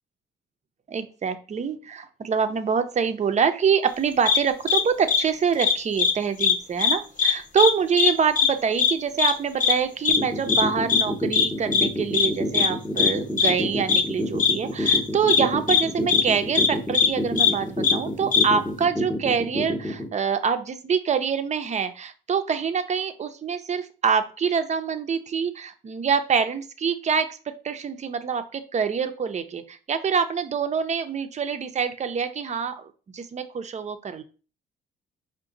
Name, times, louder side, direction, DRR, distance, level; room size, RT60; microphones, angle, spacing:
voice 1, 0.9-27.4 27.6-34.2, right 6 dB, 35° right, 9 dB, 0.6 m, -25 dB
sound 1, 4.3-4.4 4.7-4.8 5.1-5.2 5.6-6.1 6.4-6.5 6.8-7.3 7.6-7.7 8.0-8.1 8.4-8.5 8.8-8.9 9.2-9.3 9.6-9.7 10.0-10.2 10.5-10.6 10.9-11.0 11.3-11.5 11.7-11.9 12.1-12.3 12.5-12.7 13.0-13.1 13.4-13.5 13.9-14.0 14.4-14.5 14.9-15.0 15.3-15.4 15.7-15.8 16.1-16.2 16.5-16.7 16.9-17.1 17.4-17.5 17.8-17.9 18.3-18.4, left 7 dB, 40° left, 0.8 m, -19 dB
sound 2, 10.1-20.1, left 1 dB, 5° left, 0.7 m, -28 dB
4.8 x 2.2 x 3.8 m, 0.36 s
cardioid pair, 90°, 20 cm